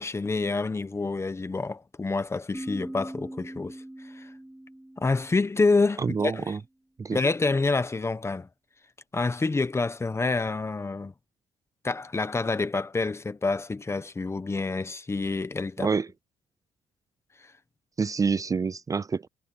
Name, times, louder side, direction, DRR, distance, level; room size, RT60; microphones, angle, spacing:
voice 1, 0.0-3.8 4.1-4.3 5.0-6.6 7.1-8.5 9.1-11.1 11.8-15.9, left 3 dB, 20° left, 1.0 m, -27 dB
sound 1, 2.5-6.1, right 1 dB, 10° right, 3.0 m, -42 dB
voice 2, 6.0-6.6 7.0-7.2 15.8-16.1 18.0-19.3, right 5 dB, 25° right, 0.4 m, -27 dB
cardioid pair, 110°, 13 cm